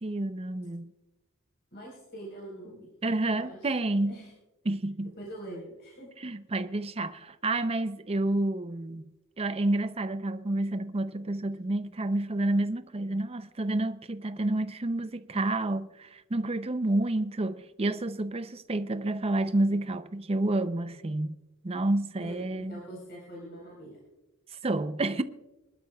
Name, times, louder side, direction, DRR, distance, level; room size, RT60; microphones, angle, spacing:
voice 1, 0.0-0.9 3.0-4.2 4.7-5.1 6.2-9.0 9.4-21.4 21.6-22.8 24.6-25.2, right 2 dB, 30° right, 0.6 m, -29 dB
voice 2, 1.7-2.9 3.3-4.3 5.2-6.1 22.2-24.0, right 1 dB, 50° left, 4.4 m, -44 dB
26.0 x 12.0 x 2.3 m
head